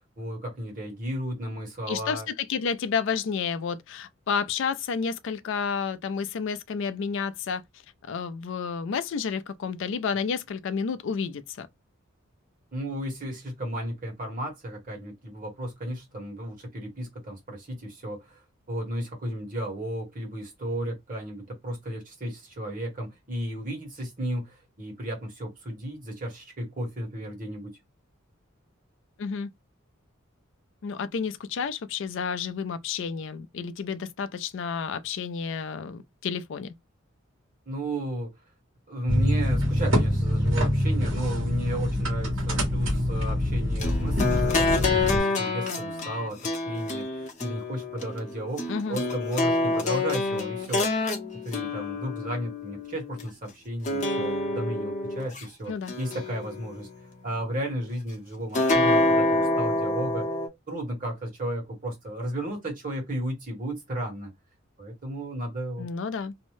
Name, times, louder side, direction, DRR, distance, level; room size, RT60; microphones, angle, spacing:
voice 1, 0.2-2.3 12.7-18.4 18.7-27.8 37.6-38.4 38.9-50.9 51.4-56.9 57.2-60.3 60.7-64.3 64.8-65.9, right 1 dB, 40° right, 1.3 m, -34 dB
voice 2, 1.9-7.6 8.1-11.7 29.2-29.5 30.8-36.7 48.7-49.0 55.7-55.9 65.8-66.3, left 6 dB, 65° left, 0.4 m, -30 dB
sound 1, 39.1-45.2, left 1 dB, 70° right, 1.3 m, -25 dB
sound 2, 43.8-53.3 53.9-55.4 55.9-57.0 58.5-60.5, left 2 dB, 35° left, 0.8 m, -27 dB
2.7 x 2.1 x 3.0 m
head